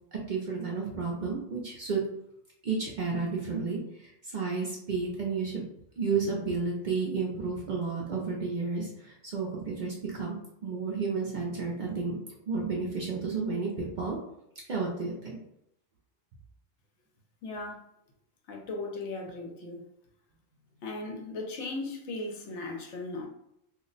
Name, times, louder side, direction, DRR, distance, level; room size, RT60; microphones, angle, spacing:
voice 1, 0.1-2.0 2.6-5.7 6.0-12.2 12.5-14.2 14.7-15.4, right 4 dB, 55° right, -3 dB, 0.5 m, -32 dB
voice 2, 17.4-17.8 18.5-19.8 20.8-23.3, left 2 dB, 65° left, 1 dB, 0.9 m, -37 dB
2.4 x 2.0 x 3.8 m, 0.77 s
omnidirectional pair, 1.3 m